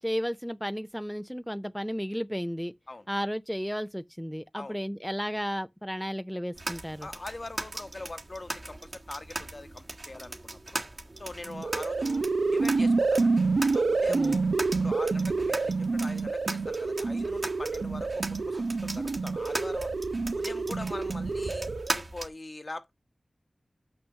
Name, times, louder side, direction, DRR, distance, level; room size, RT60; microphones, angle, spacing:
voice 1, 0.0-2.7 3.1-7.1 14.1-14.4, equal, ahead, 0.4 m, -33 dB
sound 1, 6.6-22.3, right 2 dB, 50° right, 1.6 m, -39 dB
voice 2, 7.0-10.8 11.2-12.2 12.5-13.3 13.7-14.4 14.8-18.6 18.8-19.9 20.3-21.7 21.9-22.9, left 2 dB, 50° left, 1.1 m, -42 dB
sound 2, 11.5-22.0, right 3 dB, 85° right, 0.6 m, -28 dB
6.2 x 5.9 x 7.1 m
wide cardioid pair, 65°, 0 cm